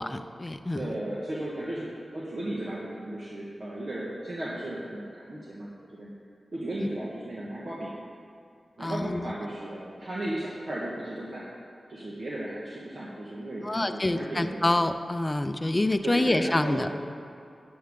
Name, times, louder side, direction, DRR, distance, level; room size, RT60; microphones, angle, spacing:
voice 1, 0.0-0.9 6.8-6.9 8.8-9.3 13.6-16.9, left 1 dB, 25° left, 9 dB, 0.5 m, -27 dB
voice 2, 0.7-6.1 6.5-7.9 8.8-11.5 11.9-14.6 16.0-16.9, right 1 dB, 60° right, -6 dB, 1.5 m, -35 dB
10.0 x 9.6 x 3.8 m, 2.5 s
cardioid pair, 60°, 0 cm